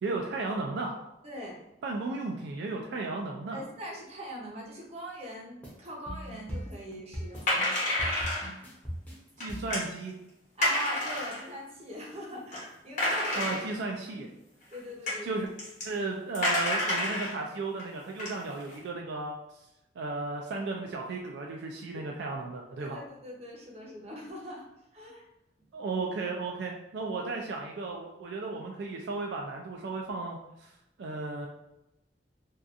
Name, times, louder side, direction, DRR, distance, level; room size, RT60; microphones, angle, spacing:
voice 1, 0.0-1.0 1.8-3.6 9.4-10.1 13.4-14.3 15.2-15.5 15.8-19.3 20.0-23.0 25.7-30.7 31.0-31.5, right 3 dB, 70° right, 1 dB, 0.3 m, -34 dB
voice 2, 1.2-1.6 3.5-7.6 10.6-13.6 14.2-14.3 14.7-15.4 21.9-22.1 22.8-24.7 24.9-25.2, equal, 35° right, -2 dB, 0.6 m, -41 dB
sound 1, 5.6-9.8, equal, 10° left, 0.6 m, -39 dB
sound 2, 7.4-8.5 9.4-9.9 10.6-11.5 12.1-12.2 12.5-12.6 13.0-13.9 14.7-14.8 15.1-15.2 15.6-15.9 16.3-17.3 17.8-17.9 18.2-18.8, left 1 dB, 45° left, 0.9 m, -29 dB
2.7 x 2.3 x 2.4 m, 0.86 s
head